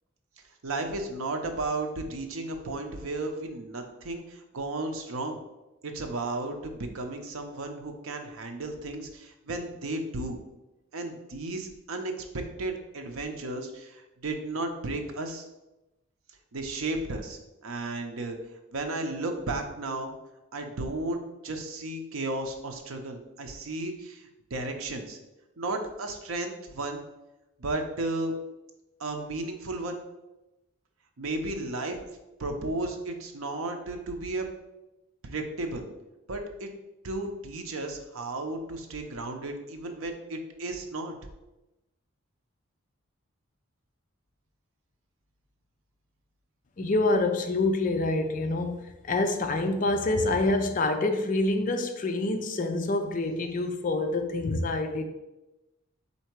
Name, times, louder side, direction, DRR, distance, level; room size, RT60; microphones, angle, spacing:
voice 1, 0.6-5.4 5.8-10.4 10.9-15.5 16.5-18.4 18.7-20.1 20.5-25.2 25.6-27.0 27.6-28.3 29.0-30.0 31.2-32.0 32.4-34.5 35.2-35.9 36.3-36.7 37.0-41.1, right 2 dB, 80° right, 4 dB, 0.6 m, -34 dB
voice 2, 46.8-55.1, left 2 dB, 40° left, 6 dB, 0.4 m, -26 dB
4.3 x 2.8 x 4.5 m, 0.99 s
head